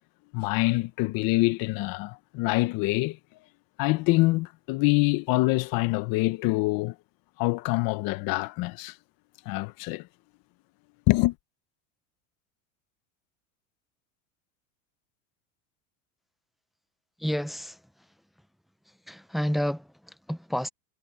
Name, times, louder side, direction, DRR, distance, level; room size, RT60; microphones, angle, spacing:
voice 1, 0.3-3.2 3.8-6.9 7.4-8.9 9.5-10.1 11.1-11.3, left 21 dB, 55° left, 1.1 m, -25 dB
voice 2, 17.2-17.8 19.1-20.7, equal, ahead, 0.5 m, -30 dB
supercardioid pair, 120°, 41 cm